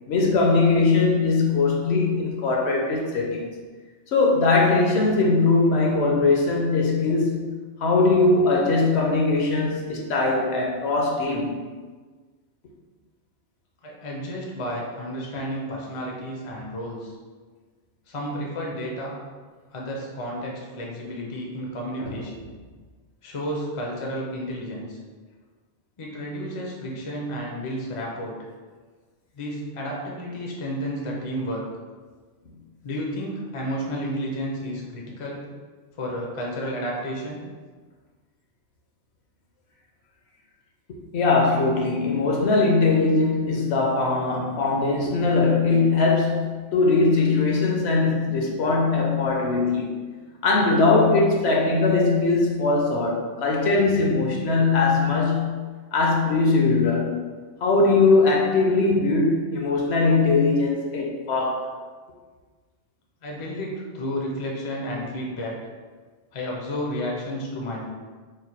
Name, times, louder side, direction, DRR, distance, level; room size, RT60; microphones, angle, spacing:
voice 1, 0.1-3.5 4.1-7.5 7.8-11.6 22.0-22.1 41.1-50.0 50.4-55.6 55.9-57.2 57.6-61.7, left 3 dB, 65° left, -1 dB, 0.8 m, -21 dB
voice 2, 13.8-17.1 18.1-19.2 19.7-22.5 23.2-25.0 26.0-28.3 29.3-31.7 32.8-35.4 36.0-37.4 63.2-65.6 66.3-67.9, equal, 40° left, -2 dB, 0.4 m, -31 dB
3.1 x 2.2 x 4.1 m, 1.4 s
omnidirectional pair, 1.3 m